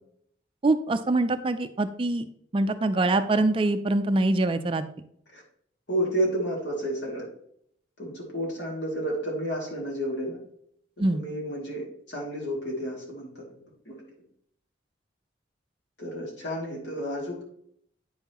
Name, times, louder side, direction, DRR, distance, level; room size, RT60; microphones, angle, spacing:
voice 1, 0.6-2.3 2.5-4.8 11.0-11.2, right 2 dB, 30° right, 9 dB, 0.3 m, -24 dB
voice 2, 5.9-7.3 8.0-10.4 11.1-13.5 13.9-14.0 16.0-17.4, equal, 65° left, -2 dB, 2.3 m, -31 dB
9.0 x 5.5 x 2.9 m, 0.67 s
head